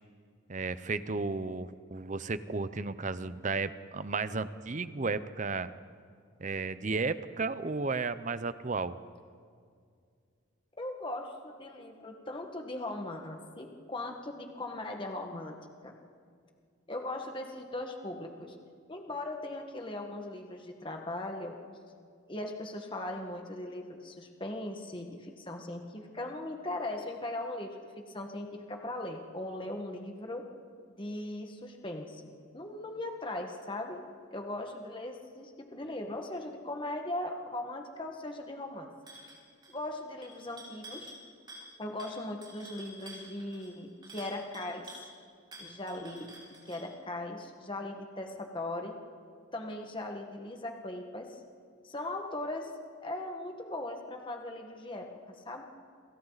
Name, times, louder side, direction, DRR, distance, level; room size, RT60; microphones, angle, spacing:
voice 1, 0.5-5.7 6.4-9.0, right 3 dB, 40° right, 13 dB, 0.7 m, -33 dB
voice 2, 10.7-15.6 15.8-15.9 16.9-18.6 18.9-21.6 22.3-30.4 31.0-34.0 34.3-38.9 39.7-41.1 41.8-44.9 45.6-46.3 46.7-48.9 49.5-51.4 51.8-52.7 53.0-55.1 55.5-55.6, left 1 dB, 25° left, 3 dB, 1.7 m, -39 dB
sound 1, 39.1-39.4 39.6-39.9 40.2-41.2 41.5-41.7 42.0-45.1 45.5-46.9, right 1 dB, 20° right, 5.7 m, -49 dB
29.0 x 27.0 x 4.1 m, 2.2 s
head